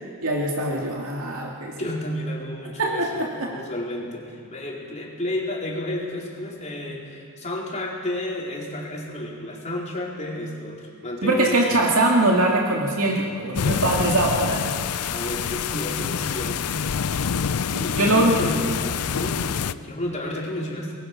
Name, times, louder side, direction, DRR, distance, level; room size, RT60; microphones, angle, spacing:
voice 1, 0.2-1.7 2.8-3.5 11.2-14.6 17.7-18.3, right 2 dB, 70° right, -2 dB, 2.6 m, -22 dB
voice 2, 1.8-11.6 13.4-13.9 15.1-17.3 17.8-20.9, left 1 dB, 30° left, -3 dB, 4.3 m, -32 dB
sound 1, 13.6-19.7, left 7 dB, 90° left, 0.6 m, -26 dB
27.0 x 21.0 x 6.1 m, 2.4 s
head